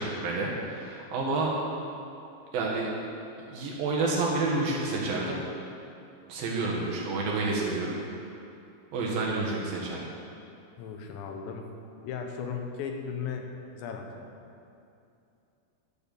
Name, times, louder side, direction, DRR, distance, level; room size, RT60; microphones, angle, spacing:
voice 1, 0.0-1.5 2.5-2.9 3.5-5.4 6.3-8.0 8.9-10.1, right 3 dB, 65° right, -3 dB, 2.9 m, -29 dB
voice 2, 10.8-11.7 12.0-14.3, left 6 dB, 85° left, 3 dB, 3.3 m, -36 dB
12.0 x 7.1 x 7.0 m, 2.7 s
omnidirectional pair, 5.0 m